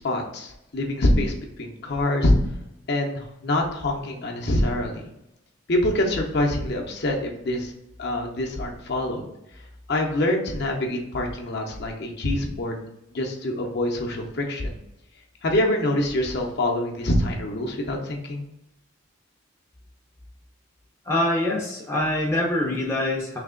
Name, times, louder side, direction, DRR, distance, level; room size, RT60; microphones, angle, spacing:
voice 1, 0.0-2.3 2.9-5.0 5.7-7.7 8.0-9.2 9.9-12.8 13.1-14.7 15.4-18.5, left 1 dB, 50° left, 0 dB, 0.7 m, -25 dB
voice 2, 21.0-23.4, left 1 dB, 10° left, -3 dB, 0.6 m, -24 dB
3.3 x 2.9 x 3.7 m, 0.85 s
head